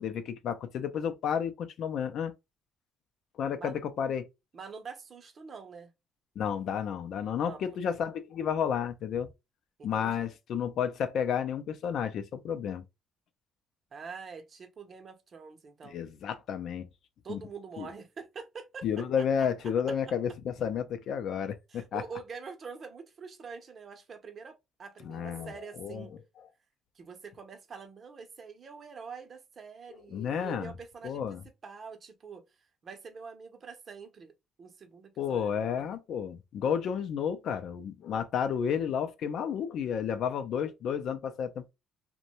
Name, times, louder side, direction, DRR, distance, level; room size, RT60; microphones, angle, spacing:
voice 1, 0.0-2.3 3.4-4.3 6.4-9.3 9.8-12.8 15.9-16.9 17.3-17.4 17.8-17.9 18.8-22.0 25.0-26.1 30.1-30.7 31.0-31.4 35.2-41.7, left 8 dB, 65° left, 0.4 m, -31 dB
voice 2, 4.5-5.9 7.4-7.8 9.8-10.3 13.9-16.0 17.2-19.5 20.1-20.2 21.7-26.1 27.0-31.4 31.6-32.4 32.8-34.3 34.6-35.9, right 5 dB, 40° right, 0.7 m, -45 dB
2.5 x 2.1 x 2.9 m
cardioid pair, 110°, 0 cm